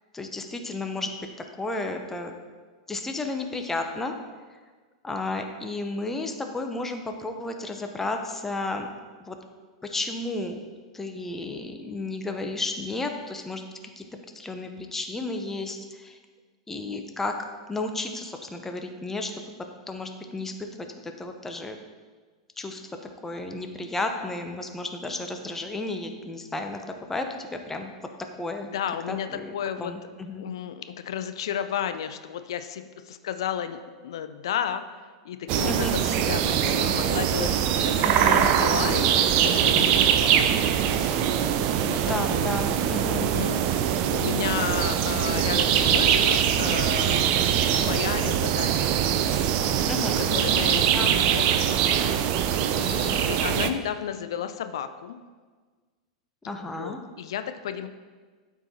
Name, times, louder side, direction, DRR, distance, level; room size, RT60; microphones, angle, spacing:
voice 1, 0.1-2.3 2.9-4.1 5.0-8.9 9.2-9.4 9.8-10.6 10.9-13.6 14.0-14.1 14.3-16.2 16.7-19.4 19.9-21.8 22.6-23.0 23.2-27.9 28.4-28.7 29.1-30.4 35.7-36.0 38.0-38.5 42.1-43.3 49.9-50.2 50.9-51.1 56.5-57.0, left 2 dB, 10° left, 5 dB, 0.8 m, -33 dB
voice 2, 28.7-29.3 29.5-29.9 30.4-34.8 35.2-40.4 41.8-42.0 42.3-42.6 43.2-47.3 47.8-48.9 50.2-51.6 52.7-55.2 56.6-57.9, left 9 dB, 65° left, 10 dB, 0.5 m, -33 dB
sound 1, 35.5-53.7, right 9 dB, 45° right, 0.5 m, -23 dB
12.0 x 4.7 x 2.8 m, 1.4 s
figure-of-eight pair, 95°, 3 cm